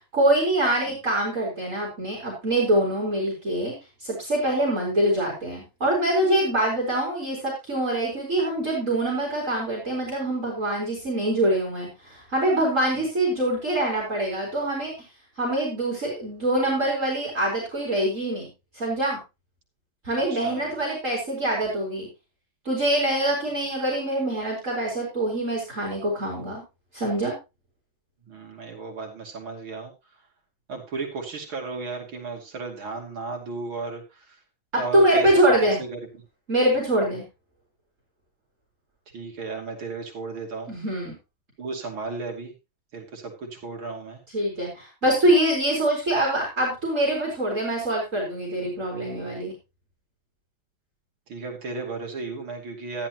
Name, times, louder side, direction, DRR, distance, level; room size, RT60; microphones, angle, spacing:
voice 1, 0.1-3.7 4.0-14.9 15.4-18.5 18.7-19.2 20.0-22.1 22.6-26.6 26.9-27.3 34.7-35.8 36.5-37.2 40.7-41.1 44.3-49.5, right 1 dB, 35° right, -3 dB, 4.6 m, -24 dB
voice 2, 20.3-20.8 28.3-29.9 30.7-34.4 34.7-36.0 39.1-40.7 41.6-42.5 42.9-44.2 51.3-53.1, right 4 dB, 80° right, 0 dB, 3.5 m, -35 dB
14.0 x 10.5 x 2.9 m, 0.26 s
omnidirectional pair, 2.2 m